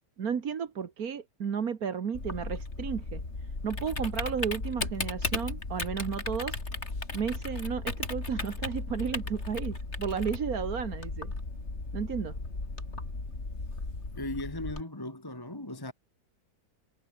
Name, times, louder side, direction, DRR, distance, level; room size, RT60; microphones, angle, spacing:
voice 1, 0.2-3.2 3.6-6.6 7.1-11.3 11.9-12.4, right 7 dB, 55° right, 1.9 m, -33 dB
Typing, 2.1-14.8, left 3 dB, 35° left, 3.8 m, -36 dB
voice 2, 14.1-15.9, left 1 dB, 10° left, 2.1 m, -37 dB
omnidirectional pair, 1.9 m